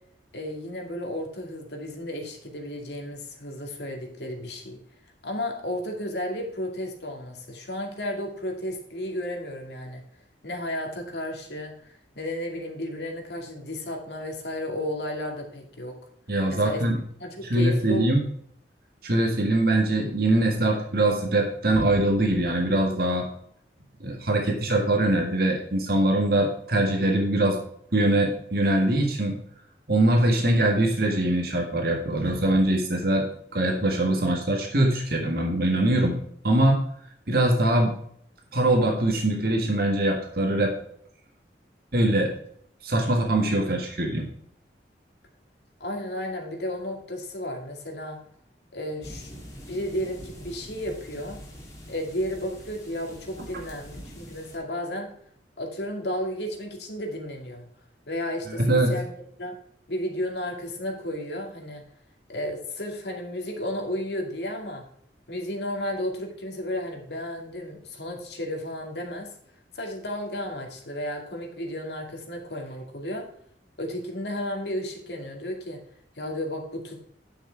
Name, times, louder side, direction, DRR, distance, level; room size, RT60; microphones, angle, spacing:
voice 1, 0.3-4.8 5.2-10.0 10.4-11.7 12.2-16.0 16.5-16.8 17.2-18.1 30.4-30.5 45.8-48.2 48.7-49.3 49.7-51.4 51.9-55.1 55.6-57.7 58.1-59.1 59.4-59.6 59.9-61.8 62.3-64.8 65.3-69.3 69.7-73.3 73.8-75.8 76.2-77.0, left 1 dB, 75° left, 2 dB, 2.3 m, -33 dB
voice 2, 16.3-17.0 17.4-18.2 19.0-23.2 24.0-27.6 27.9-29.4 29.9-33.3 33.5-36.1 36.4-36.8 37.3-38.0 38.5-40.7 41.9-42.3 42.8-44.3 58.5-58.9, right 1 dB, 60° right, 2 dB, 1.7 m, -22 dB
sound 1, 49.0-54.6, equal, 20° left, 2.6 m, -44 dB
10.0 x 6.1 x 4.5 m, 0.66 s
head